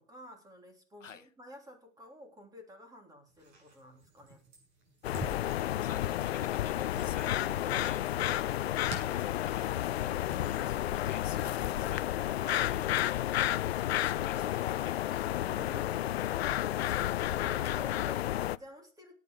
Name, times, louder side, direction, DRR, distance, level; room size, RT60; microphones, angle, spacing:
voice 1, 0.0-4.4 17.4-19.2, equal, 10° right, 3.5 m, -51 dB
sound 1, 3.3-17.8, right 2 dB, 40° right, 7.6 m, -52 dB
sound 2, 5.0-18.6, left 13 dB, 55° left, 0.6 m, -31 dB
voice 2, 5.6-9.7 10.0-15.0, left 7 dB, 85° left, 1.3 m, -49 dB
17.5 x 9.4 x 4.9 m
hypercardioid pair, 125°, 37 cm